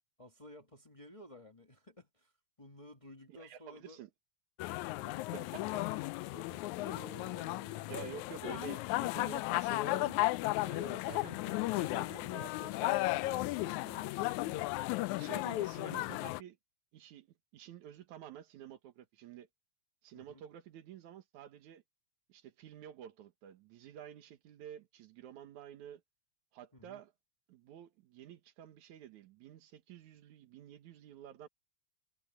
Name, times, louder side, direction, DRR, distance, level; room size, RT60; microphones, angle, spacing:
voice 1, 0.2-2.3 2.6-4.0 20.1-20.4 26.7-27.0, left 1 dB, 30° left, 0.6 m, -55 dB
voice 2, 3.3-4.1 5.0-5.6 5.9-6.1 7.9-10.2 10.6-14.6 15.2-16.6 16.9-19.5 20.0-21.8 22.3-26.0 26.5-27.1 27.5-31.5, right 10 dB, 75° right, 2.8 m, -51 dB
sound 1, 4.6-16.4, left 19 dB, 80° left, 1.9 m, -35 dB
Acoustic guitar, 6.9-9.6, right 8 dB, 60° right, 5.4 m, -57 dB
omnidirectional pair, 3.4 m